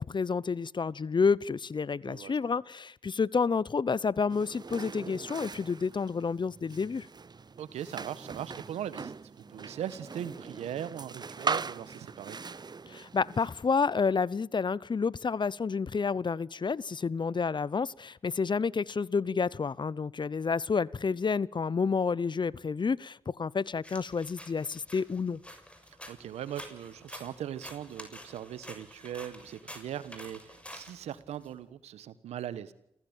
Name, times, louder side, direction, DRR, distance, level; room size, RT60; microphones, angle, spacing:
voice 1, 0.0-7.1 12.9-25.4, left 5 dB, 45° left, 23 dB, 0.8 m, -29 dB
voice 2, 2.0-2.6 7.6-12.4 21.0-21.2 25.8-32.7, right 10 dB, 85° right, 15 dB, 1.5 m, -40 dB
sound 1, 4.3-13.7, right 4 dB, 40° right, 0.8 m, -40 dB
sound 2, 23.8-31.5, left 1 dB, 10° left, 6.7 m, -49 dB
29.0 x 16.0 x 9.0 m, 0.80 s
supercardioid pair, 45°, 11 cm